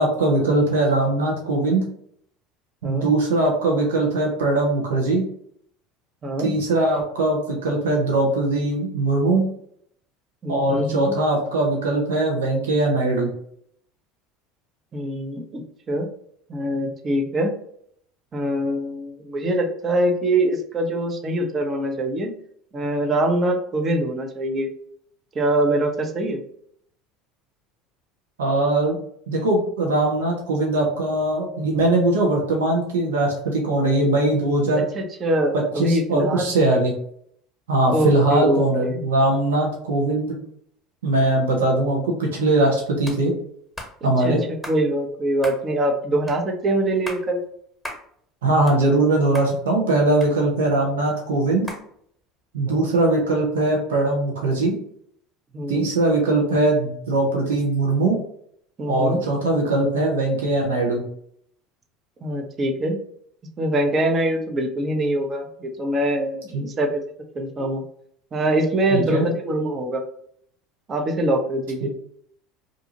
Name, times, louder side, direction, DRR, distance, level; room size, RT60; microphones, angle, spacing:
voice 1, 0.0-1.8 2.8-5.2 6.4-9.5 10.5-13.3 28.4-29.0 29.3-34.8 35.8-36.9 37.7-40.4 41.0-43.3 44.0-44.4 48.4-51.7 52.5-54.7 55.7-58.2 58.9-61.0 66.5-66.6 68.9-69.3 71.8-71.9, right 2 dB, 85° right, -1 dB, 0.7 m, -21 dB
voice 2, 6.2-6.6 10.4-11.1 14.9-16.1 16.5-17.6 18.3-22.3 22.7-24.7 25.3-26.4 34.9-36.5 37.9-39.0 44.2-44.4 44.7-47.4 52.7-52.9 55.5-55.9 58.8-59.2 62.2-63.0 63.6-67.0 67.3-67.8 68.3-70.0 70.9-71.9, right 1 dB, 35° right, 3 dB, 0.7 m, -23 dB
sound 1, 43.0-43.2 43.8-43.9 44.6-44.8 45.4-45.6 46.3-46.4 46.9-47.3 47.8-48.0 48.4-49.1 49.3-49.5 50.2-50.8 51.7-51.9, left 1 dB, ahead, 1.2 m, -36 dB
2.6 x 2.4 x 2.8 m, 0.66 s
hypercardioid pair, 80°, 0 cm